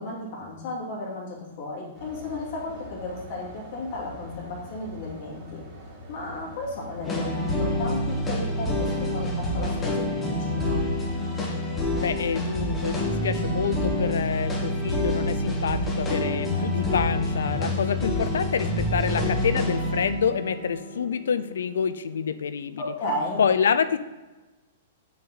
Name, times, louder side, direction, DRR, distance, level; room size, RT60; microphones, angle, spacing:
voice 1, 0.0-5.6 6.1-10.8 22.8-23.4, left 2 dB, 55° left, -3 dB, 2.5 m, -34 dB
sound 1, 1.9-19.5, equal, 35° right, 2.4 m, -44 dB
sound 2, 7.0-22.3, left 1 dB, 20° left, 1.8 m, -27 dB
voice 2, 12.0-22.9 23.4-24.0, left 7 dB, 80° left, 12 dB, 0.3 m, -27 dB
6.0 x 5.9 x 4.0 m, 1.2 s
hypercardioid pair, 120°, 0 cm